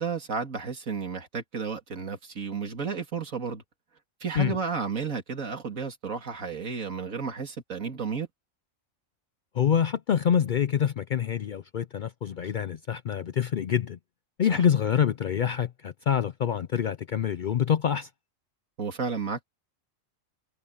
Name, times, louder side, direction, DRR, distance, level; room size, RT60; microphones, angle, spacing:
voice 1, 0.0-3.6 4.2-8.3 14.5-14.6 18.8-19.4, right 5 dB, 75° right, 2.7 m, -32 dB
voice 2, 9.6-14.0 14.4-18.1, left 8 dB, 75° left, 0.4 m, -26 dB
omnidirectional pair, 1.4 m